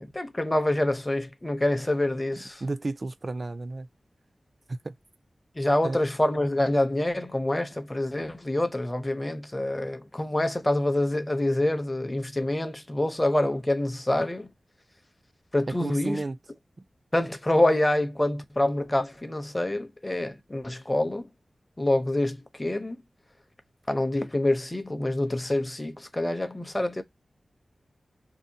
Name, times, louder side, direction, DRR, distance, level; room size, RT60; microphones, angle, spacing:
voice 1, 0.0-2.6 5.6-14.5 15.5-16.2 17.1-21.3 21.8-23.0 23.9-27.0, left 1 dB, 20° left, 0.6 m, -26 dB
voice 2, 2.6-3.9 4.7-4.9 5.8-6.0 15.8-16.4, right 2 dB, 45° right, 0.3 m, -32 dB
2.7 x 2.1 x 2.6 m
wide cardioid pair, 80°, 0 cm